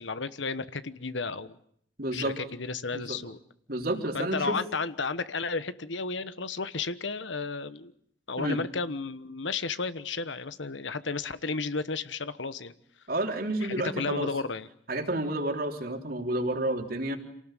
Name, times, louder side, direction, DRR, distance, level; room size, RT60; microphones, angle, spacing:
voice 1, 0.0-1.5 2.1-3.4 4.1-7.9 8.3-12.7 13.6-14.7, left 4 dB, 70° left, 13 dB, 1.2 m, -33 dB
voice 2, 2.0-2.4 2.9-3.2 3.7-4.6 8.4-8.6 13.1-14.3 14.9-17.2, right 1 dB, 50° right, 4 dB, 3.6 m, -30 dB
28.0 x 18.5 x 9.1 m, 0.67 s
head